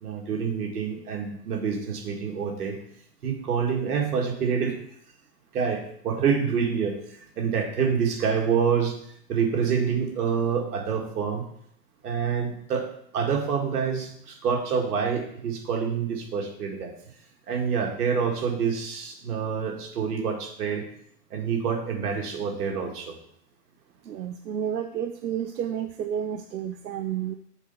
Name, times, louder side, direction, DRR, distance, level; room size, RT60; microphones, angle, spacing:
voice 1, 0.0-2.8 3.2-4.8 5.5-7.0 7.4-8.9 9.3-11.4 12.0-12.9 13.1-16.9 17.5-20.8 21.3-23.2, right 6 dB, 65° right, 2 dB, 2.0 m, -27 dB
voice 2, 24.0-27.3, right 9 dB, 90° right, 7 dB, 0.7 m, -31 dB
7.3 x 4.4 x 5.5 m, 0.67 s
hypercardioid pair, 140°, 49 cm